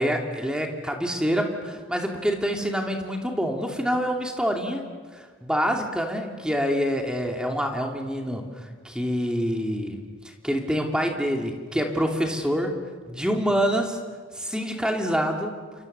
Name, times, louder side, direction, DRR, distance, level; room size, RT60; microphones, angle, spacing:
voice 1, 0.0-4.8 5.1-8.5 8.8-10.0 10.4-12.8 13.1-14.0 14.3-15.5, equal, 5° right, 2 dB, 2.8 m, -26 dB
29.5 x 25.5 x 6.9 m, 1.5 s
head